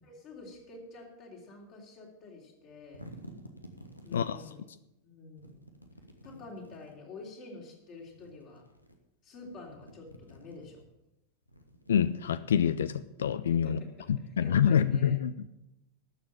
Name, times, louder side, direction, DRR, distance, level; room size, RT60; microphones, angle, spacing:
voice 1, 0.0-3.1 4.0-4.6 5.0-5.6 6.2-8.7 9.2-10.8 13.6-15.2, left 3 dB, 35° left, -1 dB, 3.5 m, -48 dB
sound 1, 2.6-4.6 5.4-7.0 7.9-9.0 9.3-10.8 11.4-13.2, equal, 85° left, 1.2 m, -52 dB
voice 2, 11.9-13.8 14.4-15.5, left 8 dB, 65° left, 16 dB, 0.4 m, -26 dB
12.5 x 6.9 x 7.4 m, 0.90 s
figure-of-eight pair, 90°, 0 cm